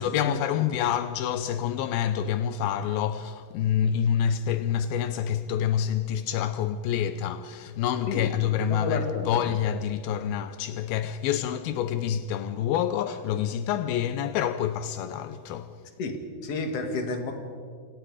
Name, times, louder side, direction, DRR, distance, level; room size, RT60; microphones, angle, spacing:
voice 1, 0.0-15.8, left 9 dB, 85° left, 2.1 m, -27 dB
voice 2, 8.7-9.3 16.0-16.1 16.4-17.3, left 3 dB, 45° left, 2.5 m, -30 dB
28.5 x 26.0 x 4.9 m
omnidirectional pair, 5.2 m